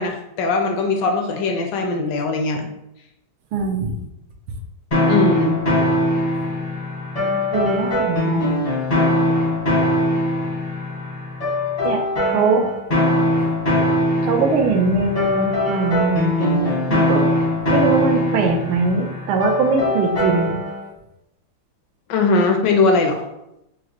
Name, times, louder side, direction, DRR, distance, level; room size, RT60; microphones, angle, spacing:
voice 1, 0.0-2.7 5.1-5.6 22.1-23.2, left 3 dB, 75° left, 4 dB, 1.1 m, -20 dB
voice 2, 3.5-4.0 7.5-8.6 11.8-12.7 14.2-17.3 17.7-20.5, right 4 dB, 90° right, 2 dB, 1.5 m, -21 dB
sound 1, 4.9-20.8, left 1 dB, 40° left, 0.5 m, -21 dB
6.1 x 2.1 x 2.9 m, 0.84 s
omnidirectional pair, 2.3 m